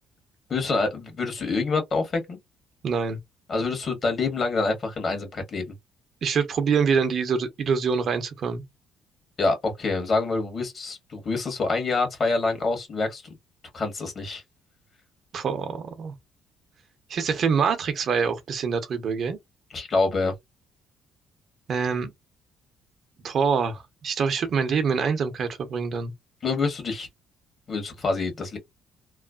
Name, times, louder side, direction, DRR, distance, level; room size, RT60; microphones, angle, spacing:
voice 1, 0.5-2.4 3.5-5.6 9.4-13.2 13.7-14.4 19.7-20.3 26.4-27.1 27.7-28.6, left 3 dB, 40° left, 1.4 m, -26 dB
voice 2, 2.8-3.2 6.2-8.6 15.3-16.1 17.1-19.4 21.7-22.1 23.2-26.1, right 6 dB, 55° right, 0.8 m, -25 dB
3.1 x 2.1 x 2.4 m
cardioid pair, 95°, 0 cm